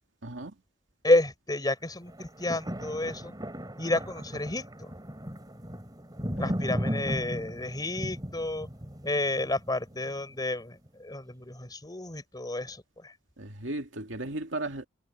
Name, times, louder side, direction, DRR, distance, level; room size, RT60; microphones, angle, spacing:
voice 1, 0.2-0.5 6.4-6.5 13.4-14.9, right 2 dB, 80° right, 2.4 m, -36 dB
voice 2, 1.0-3.3 3.8-4.9 6.4-8.7 9.0-13.1, left 2 dB, 20° left, 4.4 m, -30 dB
sound 1, 2.1-10.3 10.9-11.0, equal, 20° right, 4.9 m, -36 dB
head